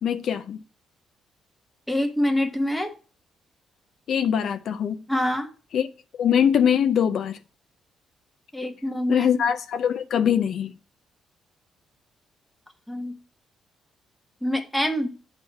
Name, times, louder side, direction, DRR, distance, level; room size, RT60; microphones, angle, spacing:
voice 1, 0.0-0.6 4.1-5.0 5.7-5.9 6.2-7.4 9.1-10.7, left 8 dB, 65° left, 0.4 m, -22 dB
voice 2, 1.9-2.9 5.1-5.5 8.5-9.3 12.9-13.2 14.4-15.1, left 1 dB, 5° left, 0.9 m, -25 dB
7.0 x 3.3 x 5.6 m
cardioid pair, 90°, 0 cm